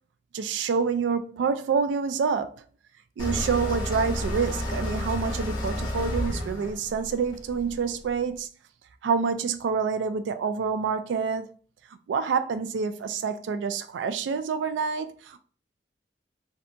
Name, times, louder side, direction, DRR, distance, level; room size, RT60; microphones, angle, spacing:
voice 1, 0.3-2.5 3.2-8.5 9.0-11.5 12.1-15.4, right 5 dB, 85° right, 0.3 m, -27 dB
sound 1, 3.2-8.1, left 1 dB, 20° left, 0.7 m, -31 dB
2.7 x 2.2 x 2.5 m
head